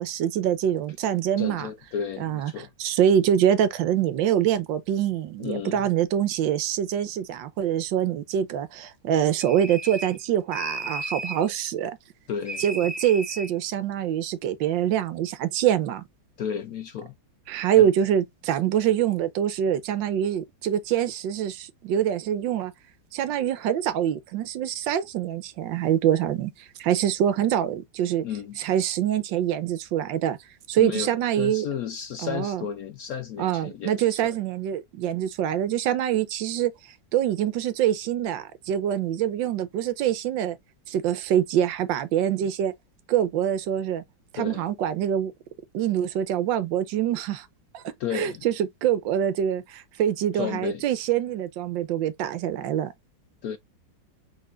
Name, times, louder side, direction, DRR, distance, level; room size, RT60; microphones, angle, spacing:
voice 1, 0.0-1.7 2.2-2.5 2.8-11.9 12.6-16.0 17.5-22.7 23.1-26.5 26.8-28.2 28.6-30.4 30.7-31.7 32.2-32.7 33.4-36.7 37.1-40.6 40.9-42.7 43.1-44.0 44.3-45.3 45.7-47.5 47.7-47.8 48.1-52.9, right 10 dB, 80° right, 1.4 m, -25 dB
voice 2, 1.4-2.7 5.4-5.8 12.3-12.6 16.4-17.1 17.8-17.9 28.2-28.6 30.8-34.3 44.3-44.7 48.0-48.5 50.3-50.8 53.4-53.6, left 8 dB, 75° left, 0.8 m, -33 dB
sound 1, 9.4-10.2 10.5-11.5 12.5-13.5, right 1 dB, 10° left, 0.8 m, -35 dB
5.0 x 3.9 x 2.4 m
omnidirectional pair, 2.0 m